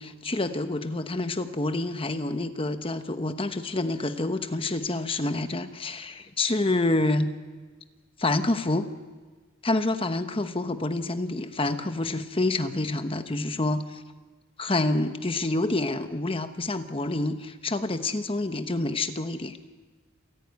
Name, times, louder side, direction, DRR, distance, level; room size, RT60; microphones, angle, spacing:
voice 1, 0.0-7.3 8.2-8.9 9.6-14.0 14.6-19.6, left 2 dB, 25° left, 9 dB, 1.1 m, -27 dB
28.0 x 10.0 x 9.5 m, 1.4 s
head